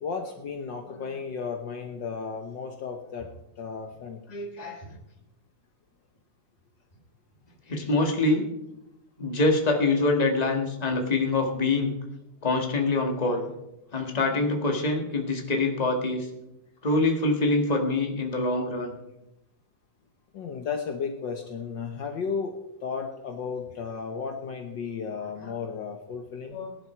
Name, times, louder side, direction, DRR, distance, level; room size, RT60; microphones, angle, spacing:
voice 1, 0.0-3.3 3.6-4.2 20.3-22.5 22.8-26.6, left 5 dB, 85° left, 3 dB, 1.0 m, -34 dB
voice 2, 4.3-4.8 7.7-8.4 9.2-11.9 12.4-13.5 13.9-16.2 16.8-18.9 25.4-25.5 26.5-26.7, left 2 dB, 20° left, 2 dB, 1.2 m, -25 dB
18.5 x 11.0 x 4.5 m, 0.88 s
omnidirectional pair, 3.6 m